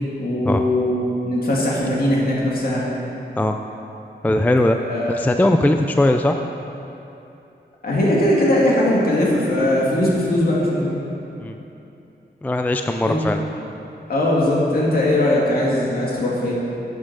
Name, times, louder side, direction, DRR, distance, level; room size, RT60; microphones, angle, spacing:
voice 1, 0.2-2.8 4.8-5.2 7.8-11.0 13.1-13.2 14.1-16.6, left 1 dB, 55° left, -5 dB, 2.5 m, -20 dB
voice 2, 4.2-4.8 5.1-6.4 11.4-11.6 12.4-13.4, left 1 dB, 10° left, 5 dB, 0.3 m, -19 dB
11.5 x 8.7 x 6.2 m, 2.8 s
wide cardioid pair, 180°, 18 cm